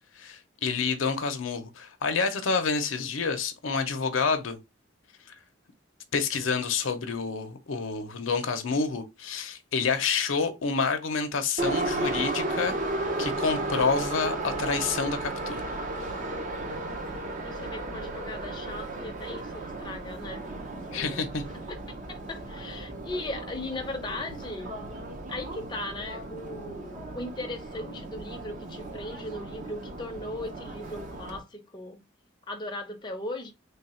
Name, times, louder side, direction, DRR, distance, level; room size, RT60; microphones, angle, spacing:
voice 1, 0.2-4.6 5.3-5.4 6.1-12.7 13.2-15.6 20.7-21.4, left 5 dB, 85° left, 0.6 m, -28 dB
Subway metro underground, 11.6-31.4, right 2 dB, 40° right, 0.7 m, -34 dB
voice 2, 17.4-20.4 20.9-21.3 21.7-21.8 22.1-24.7 25.3-32.0 32.5-33.5, left 2 dB, 25° left, 0.6 m, -38 dB
3.4 x 2.3 x 4.1 m
head